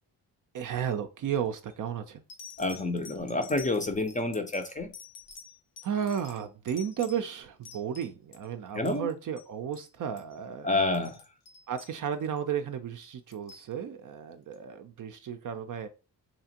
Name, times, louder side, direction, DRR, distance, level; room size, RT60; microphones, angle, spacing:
voice 1, 0.5-2.2 5.8-10.7 11.7-15.9, right 8 dB, 45° right, 0.5 m, -33 dB
sound 1, 1.5-1.7 2.3-8.5 8.7-9.1 9.4-9.5 9.7-9.9 10.2-10.4 10.8-12.4 13.0-13.7 14.5-14.6, left 6 dB, 80° left, 0.9 m, -49 dB
voice 2, 2.6-4.9 8.8-9.1 10.6-11.2, left 2 dB, 15° left, 0.5 m, -28 dB
2.9 x 2.4 x 2.8 m
supercardioid pair, 55°, 45 cm